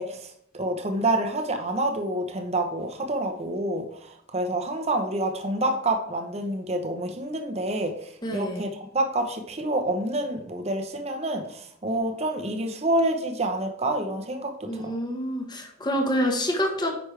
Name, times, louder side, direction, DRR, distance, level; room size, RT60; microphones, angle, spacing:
voice 1, 0.0-15.0, right 1 dB, 30° right, 4 dB, 0.9 m, -28 dB
voice 2, 8.2-8.6 14.7-16.9, equal, 20° left, 2 dB, 1.2 m, -27 dB
9.4 x 5.2 x 3.3 m, 0.68 s
head